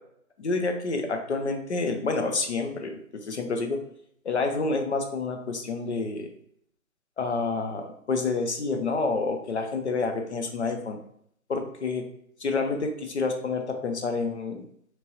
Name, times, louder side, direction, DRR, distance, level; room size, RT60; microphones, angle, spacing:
voice 1, 0.4-3.8 4.2-6.3 7.2-11.0 11.5-12.0 12.4-14.7, left 3 dB, 55° left, 4 dB, 0.6 m, -28 dB
3.0 x 2.5 x 2.9 m, 0.69 s
figure-of-eight pair, 150°, 42 cm